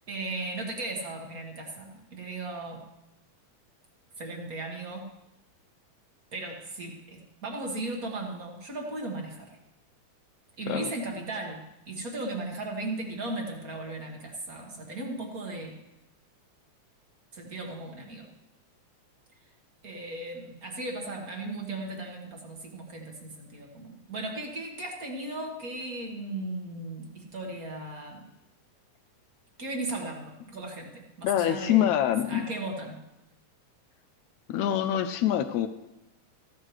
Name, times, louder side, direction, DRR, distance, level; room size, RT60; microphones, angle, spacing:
voice 1, 0.1-2.8 4.2-5.1 6.3-9.6 10.6-15.8 17.3-18.3 19.8-28.2 29.6-31.9 32.3-33.0, right 2 dB, 40° right, 1 dB, 1.4 m, -36 dB
voice 2, 31.2-32.5 34.5-35.7, left 11 dB, 80° left, 10 dB, 1.8 m, -25 dB
15.0 x 13.0 x 3.2 m, 0.90 s
omnidirectional pair, 3.7 m